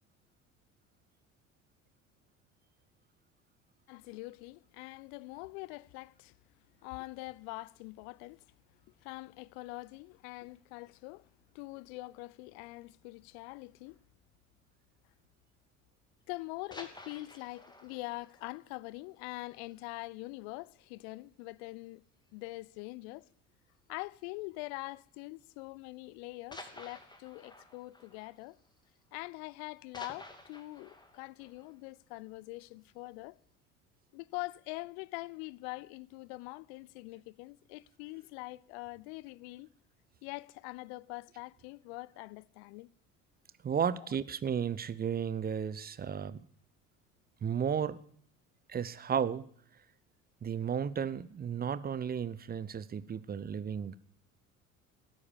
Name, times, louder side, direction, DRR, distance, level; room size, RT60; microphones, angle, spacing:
voice 1, 3.9-6.3 6.8-8.5 9.0-11.3 11.5-14.0 16.3-22.0 22.3-23.3 23.9-28.6 29.1-33.4 34.1-39.7 40.2-42.9 44.0-44.1, left 22 dB, 55° left, 0.6 m, -44 dB
sound 1, 16.5-20.0 20.3-20.4 20.9-21.0 21.3-21.4 22.3-22.7 23.9-24.2 25.0-25.1 26.5-29.3 29.6-32.7 33.1-33.2, left 2 dB, 10° left, 2.7 m, -52 dB
voice 2, 43.6-46.4 47.4-48.0 48.7-49.5 50.4-53.9, right 7 dB, 25° right, 0.9 m, -33 dB
17.5 x 9.8 x 7.3 m
figure-of-eight pair, 65°, 39 cm